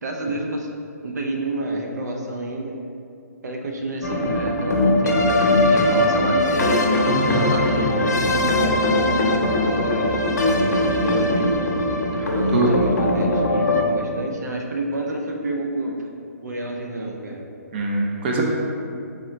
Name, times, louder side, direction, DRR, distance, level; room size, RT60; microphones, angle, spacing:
voice 1, 0.0-0.7 1.0-2.8 3.4-6.8 7.2-11.5 12.3-16.1 16.4-17.4, right 2 dB, 80° right, 1 dB, 0.6 m, -29 dB
sound 1, 4.0-13.8, left 1 dB, 85° left, 0.7 m, -20 dB
voice 2, 12.2-12.7 17.7-18.4, right 3 dB, 40° right, -1 dB, 0.6 m, -23 dB
4.4 x 3.7 x 3.1 m, 2.5 s
hypercardioid pair, 155°, 9 cm